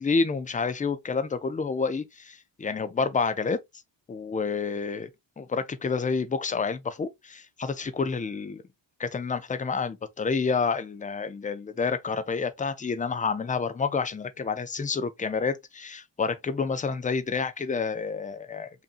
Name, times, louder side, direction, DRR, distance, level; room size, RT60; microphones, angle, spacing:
voice 1, 0.0-3.6 4.1-5.1 5.4-8.6 9.0-18.7, left 5 dB, 20° left, 0.4 m, -29 dB
5.4 x 2.6 x 2.4 m
wide cardioid pair, 170°, 45 cm